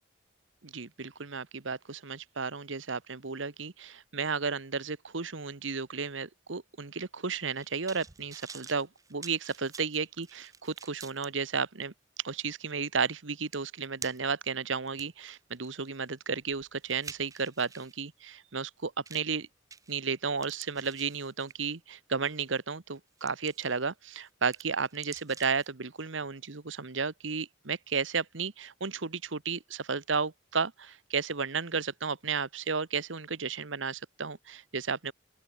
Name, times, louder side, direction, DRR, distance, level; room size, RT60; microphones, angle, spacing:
voice 1, 0.6-11.9 12.2-19.5 19.9-35.1, right 5 dB, 85° right, 1.3 m, -33 dB
sound 1, 7.3-11.3 11.8-11.9 13.1-13.2 13.5-14.4 14.9-18.0 19.1-19.4 19.7-20.1 20.4-21.7 22.2-22.5 22.9-23.8 24.1-25.7 26.0-26.1, right 6 dB, 15° right, 0.8 m, -48 dB
open air
head